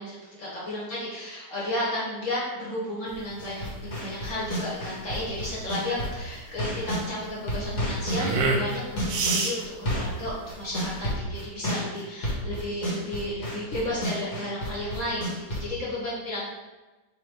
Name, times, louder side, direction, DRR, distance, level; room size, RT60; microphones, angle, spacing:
voice 1, 0.0-16.4, left 1 dB, 45° left, -7 dB, 1.8 m, -33 dB
sound 1, 3.1-11.1, right 3 dB, 85° right, 1.4 m, -31 dB
sound 2, 3.4-7.1 7.5-15.7, equal, 60° left, 1.8 m, -31 dB
3.6 x 3.3 x 4.5 m, 1.1 s
omnidirectional pair, 2.0 m